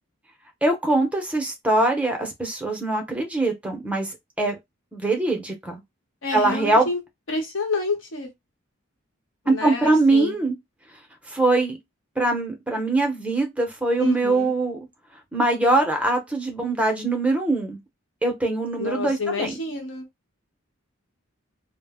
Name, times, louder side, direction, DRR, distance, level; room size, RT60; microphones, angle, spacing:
voice 1, 0.6-4.1 4.4-4.6 4.9-5.8 6.3-6.9 9.5-10.5 11.3-11.8 12.2-14.8 15.3-17.8 18.2-19.5, right 2 dB, 5° right, 0.6 m, -22 dB
voice 2, 6.2-7.0 7.3-8.3 9.4-10.4 14.0-14.5 18.8-20.1, left 3 dB, 75° left, 0.9 m, -28 dB
2.0 x 2.0 x 3.3 m
head